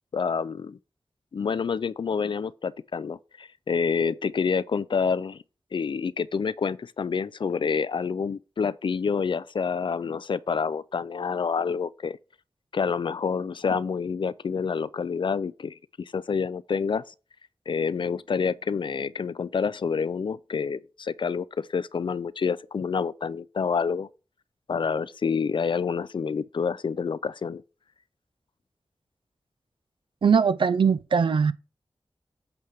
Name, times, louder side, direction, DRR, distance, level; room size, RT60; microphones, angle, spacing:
voice 1, 0.1-0.8 1.3-5.4 5.7-12.2 12.7-17.0 17.7-24.1 24.7-27.6, left 5 dB, 60° left, 0.3 m, -28 dB
voice 2, 30.2-31.5, right 6 dB, 65° right, 0.4 m, -21 dB
8.0 x 3.3 x 5.0 m
cardioid pair, 45°, 9 cm